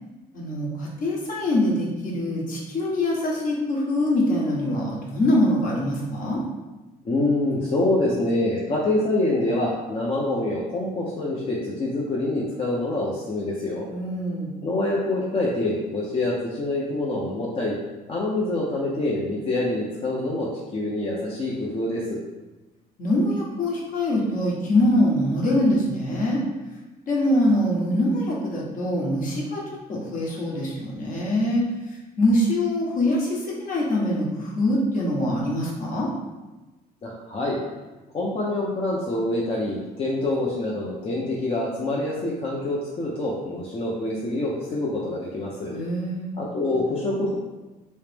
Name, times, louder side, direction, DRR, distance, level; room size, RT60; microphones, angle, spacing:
voice 1, 0.3-6.4 13.9-14.5 23.0-26.4 27.0-29.6 29.9-31.6 32.2-36.1 45.7-46.3, left 1 dB, 55° left, -4 dB, 1.1 m, -23 dB
voice 2, 7.0-13.8 14.6-17.8 18.1-22.2 37.0-37.6 38.1-45.7 46.4-47.4, left 2 dB, 35° left, -5 dB, 0.6 m, -26 dB
3.1 x 2.9 x 3.4 m, 1.1 s
cardioid pair, 110°, 17 cm